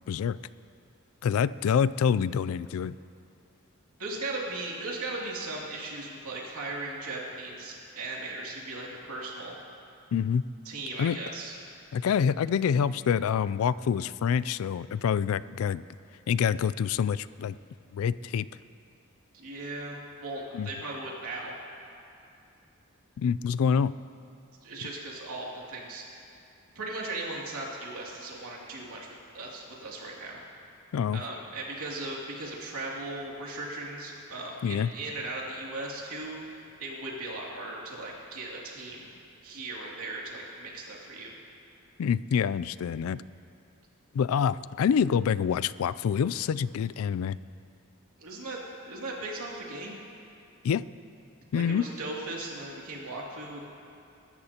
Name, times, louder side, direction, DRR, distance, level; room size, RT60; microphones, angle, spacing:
voice 1, 0.1-0.4 1.2-2.9 10.1-10.4 11.0-11.2 11.9-15.8 16.3-17.6 17.9-18.5 20.5-20.7 23.2-23.9 30.9-31.2 34.6-34.9 42.0-43.2 44.1-47.4 50.6-50.8 51.5-51.9, left 7 dB, 75° left, 17 dB, 0.3 m, -26 dB
voice 2, 4.0-9.6 10.6-11.5 19.3-21.5 24.6-26.3 26.7-30.4 31.1-39.1 39.4-41.4 48.2-50.0 51.5-53.7, right 2 dB, 85° right, -3 dB, 2.6 m, -38 dB
23.0 x 13.0 x 2.9 m, 2.5 s
head